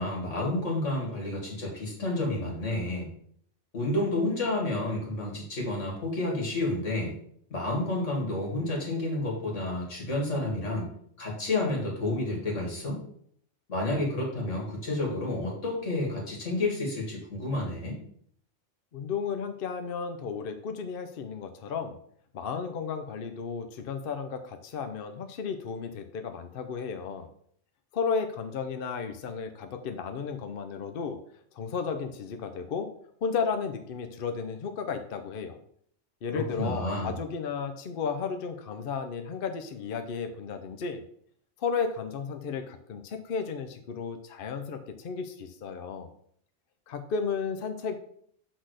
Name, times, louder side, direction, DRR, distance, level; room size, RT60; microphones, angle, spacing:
voice 1, 0.0-3.1 3.7-7.1 7.5-10.9 11.2-13.0 13.7-18.0 36.3-37.1, left 2 dB, 75° left, -1 dB, 2.5 m, -30 dB
voice 2, 18.9-22.0 22.3-27.3 27.9-31.2 31.5-32.9 33.2-35.6 36.2-41.0 41.6-46.1 46.9-48.0, left 5 dB, 55° left, 7 dB, 0.8 m, -33 dB
6.2 x 4.1 x 6.4 m, 0.64 s
omnidirectional pair, 1.3 m